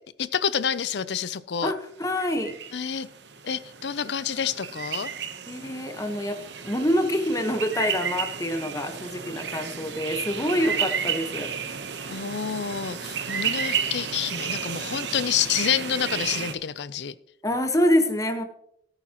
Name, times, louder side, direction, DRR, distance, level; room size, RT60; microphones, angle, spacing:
voice 1, 0.2-1.7 2.7-3.1 3.4-5.1 12.1-17.1, left 8 dB, 75° left, 16 dB, 0.6 m, -28 dB
voice 2, 1.6-2.5 5.5-11.5 17.4-18.4, equal, 20° left, 6 dB, 1.2 m, -26 dB
sound 1, 2.0-16.5, right 7 dB, 80° right, 1.1 m, -32 dB
17.0 x 9.0 x 3.0 m, 0.71 s
head